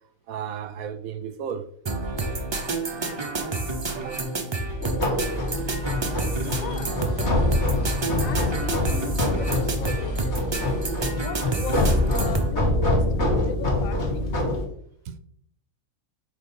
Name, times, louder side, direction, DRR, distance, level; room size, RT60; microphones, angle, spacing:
voice 1, 0.3-1.7 3.9-4.2 6.4-6.8 14.3-14.6 15.1-15.2, right 8 dB, 80° right, 1.1 m, -35 dB
sound 1, 1.9-12.5, right 3 dB, 25° right, 0.6 m, -29 dB
sound 2, 4.8-14.6, left 1 dB, 50° left, 1.9 m, -25 dB
sound 3, 5.0-11.0, equal, 30° left, 1.4 m, -44 dB
voice 2, 6.4-7.6 8.2-10.7 11.1-14.2, left 9 dB, 80° left, 1.0 m, -38 dB
6.3 x 4.0 x 5.3 m
omnidirectional pair, 1.5 m